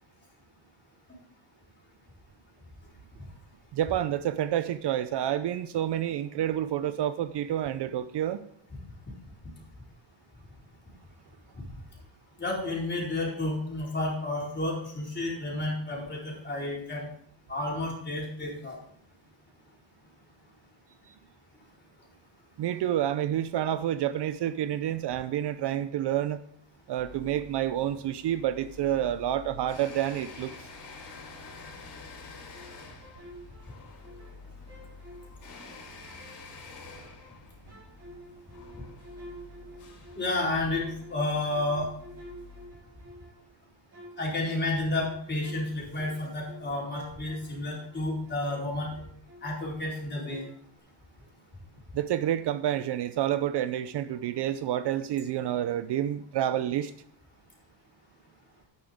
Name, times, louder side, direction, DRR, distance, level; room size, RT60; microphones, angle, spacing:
voice 1, 3.7-8.4 22.6-26.4 26.9-30.7 51.9-56.9, right 11 dB, 60° right, 0.7 m, -29 dB
voice 2, 12.4-17.1 17.5-18.8 40.2-41.9 44.2-48.9 49.4-50.4, left 2 dB, 25° left, 4.1 m, -31 dB
sound 1, 27.0-42.7, left 4 dB, 60° left, 3.5 m, -48 dB
sound 2, 32.5-34.4 34.7-37.4 37.7-43.5 43.9-49.7 49.9-50.8, right 1 dB, 35° right, 4.4 m, -50 dB
11.5 x 9.3 x 3.6 m
cardioid pair, 140°, 46 cm